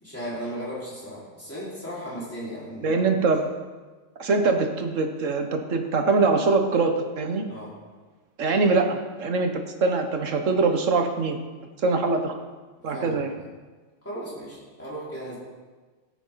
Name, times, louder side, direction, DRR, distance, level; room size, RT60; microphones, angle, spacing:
voice 1, 0.0-3.0 7.5-7.8 12.9-13.5 14.0-15.4, equal, 10° left, -9 dB, 4.9 m, -36 dB
voice 2, 2.8-3.4 4.2-7.5 8.4-11.4 11.8-12.3 12.8-13.3, right 3 dB, 80° right, 5 dB, 1.6 m, -23 dB
17.0 x 9.1 x 4.0 m, 1.4 s
omnidirectional pair, 1.3 m